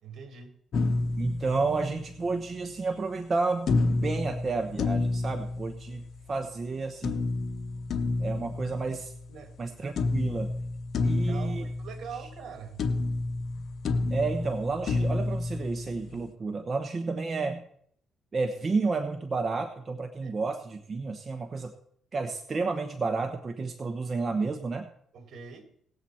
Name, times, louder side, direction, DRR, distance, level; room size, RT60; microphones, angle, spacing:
voice 1, 0.0-0.5 9.3-9.5 11.0-12.9 20.2-20.4 25.1-25.7, right 6 dB, 65° right, 7 dB, 2.0 m, -43 dB
sound 1, 0.7-2.3 3.7-6.3 7.0-9.6 10.0-12.5 12.8-16.3, left 3 dB, 60° left, 0.9 m, -30 dB
voice 2, 1.2-6.0 6.3-7.3 8.2-9.1 9.6-10.5 11.0-11.6 14.1-17.6 18.3-21.7 22.1-24.9, right 4 dB, 35° right, 5 dB, 1.0 m, -31 dB
18.5 x 7.7 x 4.3 m, 0.65 s
cardioid pair, 90°, 0 cm